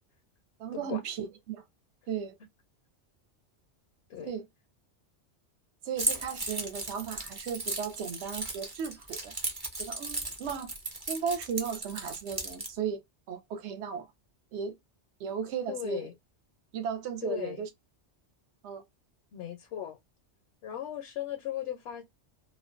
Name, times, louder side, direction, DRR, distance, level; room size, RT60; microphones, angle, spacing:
voice 1, 0.6-1.6 2.1-2.4 4.2-4.4 5.8-9.3 9.8-10.7 11.1-13.0 13.3-14.1 14.5-14.7 15.2-16.1 16.7-17.7 18.6-18.8, right 7 dB, 80° right, 0.9 m, -35 dB
Keys jangling, 6.0-12.7, right 2 dB, 25° right, 0.6 m, -36 dB
voice 2, 15.7-16.1 17.2-17.6 19.3-20.0 20.6-22.0, left 11 dB, 75° left, 0.8 m, -37 dB
2.5 x 2.2 x 2.4 m
omnidirectional pair, 1.2 m